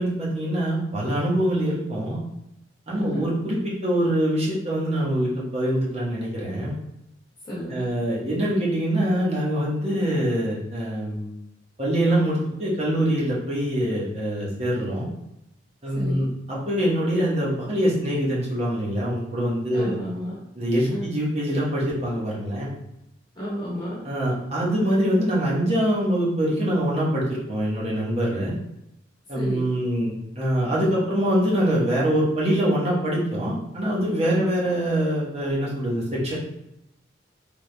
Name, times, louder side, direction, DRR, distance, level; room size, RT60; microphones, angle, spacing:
voice 1, 0.0-2.2 2.9-6.7 7.7-11.3 11.8-15.1 15.8-20.0 20.6-22.8 24.0-28.5 29.3-36.3, right 1 dB, 35° right, -6 dB, 1.1 m, -24 dB
voice 2, 2.9-3.3 7.5-7.9 15.9-16.3 19.7-20.4 20.9-21.1 23.3-24.0 29.3-29.7 34.3-34.5, equal, 25° left, -7 dB, 0.9 m, -32 dB
3.5 x 2.9 x 3.3 m, 0.86 s
head